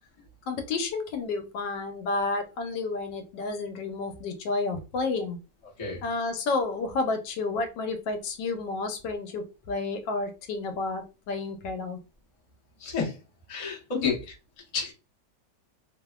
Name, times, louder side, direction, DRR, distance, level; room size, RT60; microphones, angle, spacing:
voice 1, 0.5-5.4 6.0-12.0 13.9-14.1, left 3 dB, 80° left, 6 dB, 1.3 m, -31 dB
voice 2, 12.8-13.2 13.5-14.2 14.7-14.9, left 4 dB, 35° left, -3 dB, 0.5 m, -30 dB
3.1 x 2.0 x 2.3 m, 0.30 s
omnidirectional pair, 2.0 m